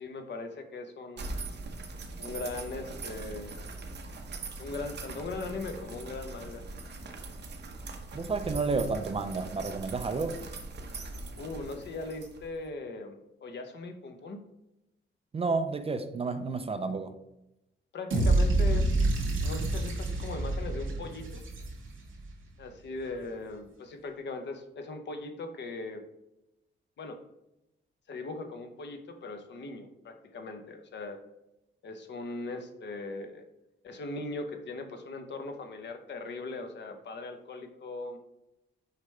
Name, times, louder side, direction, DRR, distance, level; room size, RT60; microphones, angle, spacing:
voice 1, 0.0-1.3 2.2-3.5 4.6-6.7 11.4-14.4 17.9-19.1 19.4-21.4 22.6-26.0 27.0-27.2 28.1-31.2 31.8-33.4 33.8-38.2, left 3 dB, 60° left, 6 dB, 0.8 m, -39 dB
sound 1, 1.2-12.7, right 3 dB, 55° right, 0.9 m, -41 dB
voice 2, 8.1-10.4 15.3-17.2, right 4 dB, 30° right, 9 dB, 0.4 m, -31 dB
sound 2, 18.1-22.2, right 2 dB, 70° right, 2.3 m, -27 dB
6.6 x 5.0 x 3.3 m, 0.88 s
wide cardioid pair, 175°, 21 cm